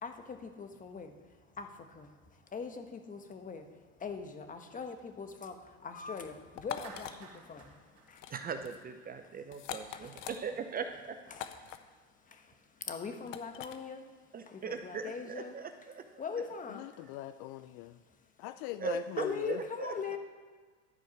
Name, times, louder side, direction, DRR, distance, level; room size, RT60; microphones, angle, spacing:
voice 1, 0.0-8.3 9.9-10.2 11.3-15.6 16.2-17.0 19.2-20.2, left 5 dB, 20° left, 6 dB, 1.1 m, -42 dB
sound 1, 6.6-7.1 8.1-8.3 8.6-8.8 9.5-10.4 11.3-11.8 13.3-13.8, left 11 dB, 85° left, 0.8 m, -42 dB
Clapping, 6.8-9.1, right 5 dB, 80° right, 1.8 m, -55 dB
voice 2, 8.3-11.2 14.3-16.2 18.8-19.9, right 5 dB, 25° right, 8 dB, 0.6 m, -39 dB
voice 3, 16.7-18.0 18.4-19.6, left 15 dB, 55° left, 12 dB, 0.5 m, -42 dB
12.0 x 4.6 x 5.9 m, 1.5 s
supercardioid pair, 105°, 37 cm